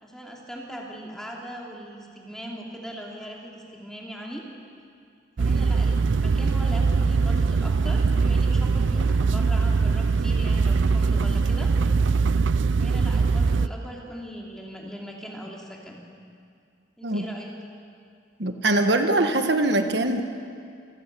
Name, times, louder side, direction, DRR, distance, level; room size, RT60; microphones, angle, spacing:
voice 1, 0.0-4.4 5.4-11.7 12.8-16.0 17.0-17.5, equal, 5° left, -2 dB, 2.8 m, -39 dB
sound 1, 5.4-13.7, right 4 dB, 90° right, 0.5 m, -22 dB
voice 2, 18.4-20.2, right 2 dB, 60° right, 6 dB, 1.5 m, -22 dB
27.5 x 15.5 x 6.9 m, 2.3 s
head